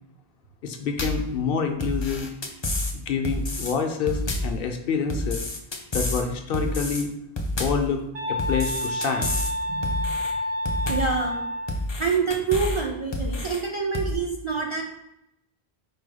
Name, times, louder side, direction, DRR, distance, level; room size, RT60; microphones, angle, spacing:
voice 1, 0.6-2.3 3.1-5.4 5.9-7.1 7.6-8.0 8.3-9.3, left 6 dB, 65° left, 5 dB, 0.8 m, -27 dB
sound 1, 1.0-1.3 1.8-2.9 3.2-3.7 4.1-4.6 5.1-6.2 6.5-7.0 7.4-7.9 8.4-9.5 9.8-10.3 10.7-11.2 11.7-12.8 13.1-13.6 13.9-14.1, left 1 dB, 35° left, 0.5 m, -29 dB
sound 2, 8.1-11.8, left 1 dB, 85° right, 0.9 m, -29 dB
voice 2, 9.7-10.0 10.9-11.4 12.0-14.8, right 5 dB, 40° right, -1 dB, 0.5 m, -26 dB
4.8 x 2.2 x 4.7 m, 0.81 s
omnidirectional pair, 1.0 m